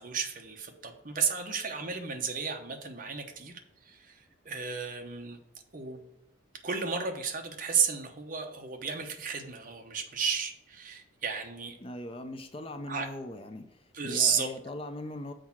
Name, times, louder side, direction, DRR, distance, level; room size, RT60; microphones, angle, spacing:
voice 1, 0.0-5.4 5.7-6.0 6.6-11.8 12.9-13.1 13.9-14.5, right 6 dB, 40° right, 4 dB, 0.9 m, -33 dB
voice 2, 11.8-13.7 14.0-15.3, left 1 dB, 25° left, 7 dB, 0.5 m, -40 dB
6.4 x 4.7 x 5.9 m, 0.86 s
head